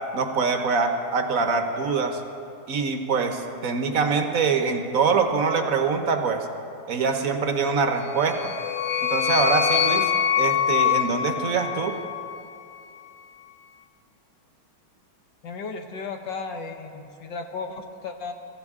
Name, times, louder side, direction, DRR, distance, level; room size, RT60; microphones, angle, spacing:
voice 1, 0.1-2.2 2.7-6.5 6.9-8.5 9.0-10.1 10.4-11.9, right 5 dB, 65° right, 5 dB, 0.8 m, -24 dB
sound 1, 8.1-12.4, left 9 dB, 85° left, 0.7 m, -24 dB
voice 2, 15.4-18.3, left 4 dB, 65° left, 4 dB, 1.4 m, -34 dB
21.5 x 14.5 x 3.6 m, 2.6 s
omnidirectional pair, 2.4 m